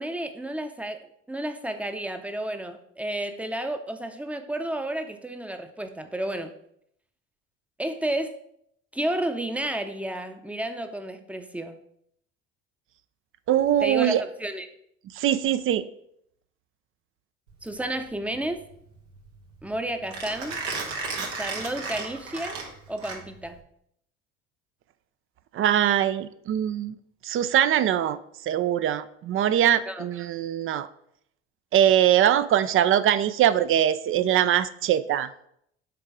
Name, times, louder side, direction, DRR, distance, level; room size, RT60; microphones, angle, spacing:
voice 1, 0.0-6.5 7.8-8.4 8.9-11.8 13.8-14.7 17.6-18.6 19.6-20.6 21.3-22.6 22.9-23.6 29.9-30.1, right 1 dB, 5° right, 7 dB, 0.7 m, -31 dB
voice 2, 13.5-14.2 15.2-15.9 25.5-26.9 27.2-28.2 28.5-30.9 31.7-35.3, right 10 dB, 40° right, 14 dB, 0.5 m, -22 dB
Mechanisms, 17.5-23.6, right 4 dB, 80° right, 1.4 m, -35 dB
6.8 x 3.8 x 4.9 m, 0.72 s
hypercardioid pair, 70°, 34 cm